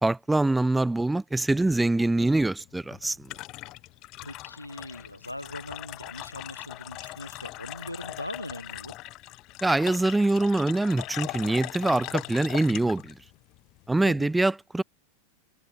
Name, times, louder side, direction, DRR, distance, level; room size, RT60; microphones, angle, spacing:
voice 1, 0.0-3.2 9.6-13.1 13.9-14.8, right 2 dB, 5° right, 0.7 m, -24 dB
sound 1, 2.6-14.3, left 19 dB, 40° left, 7.9 m, -40 dB
voice 2, 4.2-8.9 14.0-14.3, left 1 dB, 85° left, 5.9 m, -40 dB
figure-of-eight pair, 90°, 0 cm